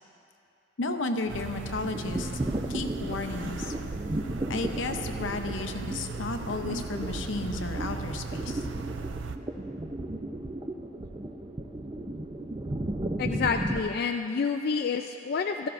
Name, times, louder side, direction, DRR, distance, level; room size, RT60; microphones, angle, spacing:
voice 1, 0.8-2.4 2.7-3.7 4.5-8.7, left 3 dB, 80° left, 6 dB, 0.7 m, -33 dB
sound 1, 1.2-13.8, right 1 dB, 25° right, 0.5 m, -35 dB
sound 2, 1.3-9.4, right 4 dB, 75° right, 0.5 m, -37 dB
voice 2, 13.2-15.7, left 5 dB, 50° left, 5 dB, 0.3 m, -28 dB
16.0 x 13.0 x 2.6 m, 2.6 s
head